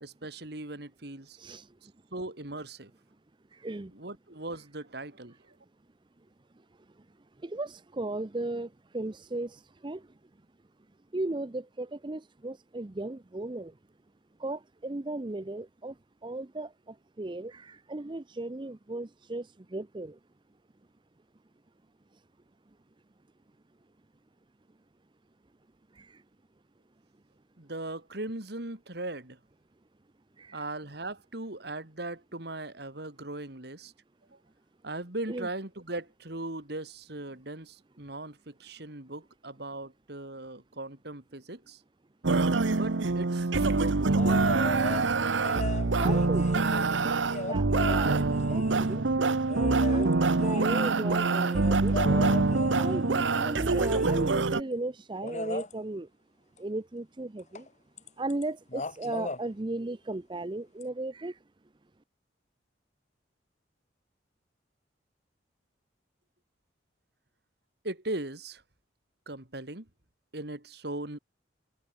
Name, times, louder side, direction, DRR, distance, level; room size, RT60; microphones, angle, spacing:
voice 1, 0.0-1.4 2.1-2.9 3.9-5.3 27.6-29.4 30.5-33.9 34.8-41.8 42.7-44.2 67.8-68.6 69.3-69.8 70.3-71.2, right 2 dB, 60° right, 2.7 m, -39 dB
voice 2, 7.4-8.7 8.9-9.6 9.8-10.0 11.1-13.7 14.4-15.9 16.2-16.7 17.2-19.5 19.7-20.1 26.0-26.1 30.4-30.6 35.3-35.5 46.0-46.8 47.5-48.2 48.5-49.4 49.9-52.2 52.8-56.1 56.6-57.6 58.2-61.3, right 2 dB, 25° right, 0.6 m, -36 dB
sound 1, 42.2-54.6, right 3 dB, 80° right, 0.9 m, -25 dB
sound 2, 44.2-45.1 45.4-49.0 49.5-54.3 55.2-55.7 57.5-57.7 58.0-58.4 58.7-59.4 60.8-60.9, left 2 dB, 40° left, 2.0 m, -38 dB
head